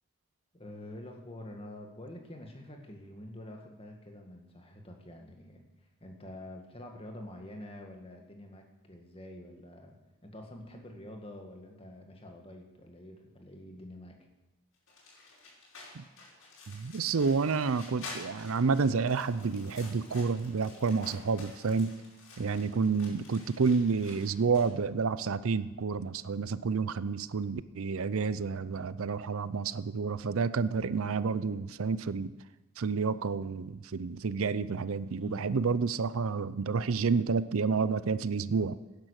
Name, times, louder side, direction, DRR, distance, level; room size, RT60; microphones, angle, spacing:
voice 1, 0.5-5.6 6.0-10.0 10.2-14.2 22.4-22.7 35.2-35.5, left 1 dB, 25° left, 3 dB, 1.9 m, -47 dB
sound 1, 14.9-24.7, left 3 dB, 70° left, 5.7 m, -50 dB
voice 2, 16.7-21.9 22.4-32.3 32.8-38.8, right 5 dB, 75° right, 16 dB, 0.5 m, -29 dB
17.0 x 10.5 x 6.5 m, 1.1 s
head